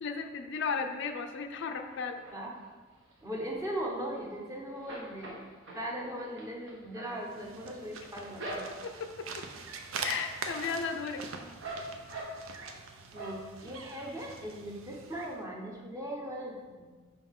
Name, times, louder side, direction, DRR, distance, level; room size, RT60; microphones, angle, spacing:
voice 1, 0.0-2.2 8.8-9.4 10.0-11.2, left 5 dB, 60° left, 6 dB, 0.4 m, -35 dB
sound 1, 1.9-2.7 3.1-4.4 4.7-9.1 9.5-10.0 10.3-12.8 13.1-13.8 14.2-14.3 14.6-14.7, right 1 dB, 65° right, 1.1 m, -45 dB
voice 2, 3.2-5.3 5.7-8.6 13.1-16.8, equal, 15° right, -1 dB, 0.9 m, -39 dB
sound 2, 7.1-15.4, right 4 dB, 80° right, 0.6 m, -43 dB
5.4 x 5.3 x 3.6 m, 1.4 s
head